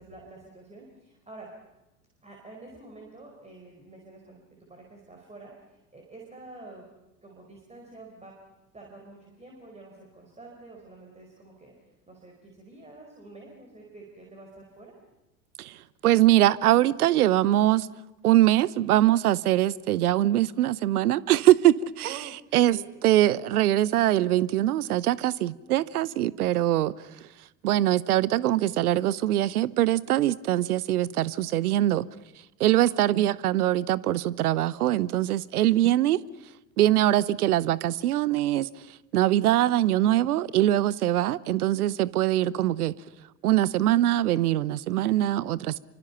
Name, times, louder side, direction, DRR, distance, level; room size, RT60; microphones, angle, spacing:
voice 1, 0.0-1.5 2.2-6.9 7.2-8.3 8.7-11.7 12.1-14.9 22.0-22.9 32.8-33.6, right 2 dB, 15° right, 5.0 m, -48 dB
voice 2, 15.6-17.9 18.2-32.1 32.6-36.2 36.8-42.9 43.4-45.8, right 14 dB, 65° right, 0.9 m, -23 dB
27.5 x 24.5 x 5.8 m
figure-of-eight pair, 80°, 48 cm